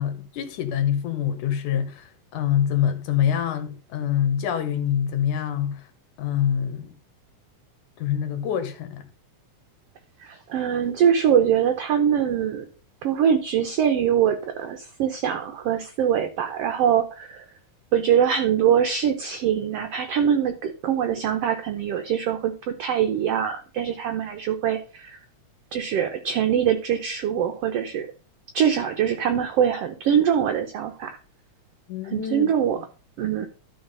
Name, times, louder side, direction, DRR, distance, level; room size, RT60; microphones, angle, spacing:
voice 1, 0.0-5.8 6.2-6.9 8.0-9.0 31.9-32.5, left 9 dB, 85° left, 2.7 m, -25 dB
voice 2, 10.2-12.7 13.0-17.4 17.9-25.2 25.7-28.1 28.5-31.2 32.0-32.8 33.2-33.5, right 8 dB, 65° right, 1.7 m, -23 dB
12.5 x 4.8 x 5.4 m
omnidirectional pair, 3.4 m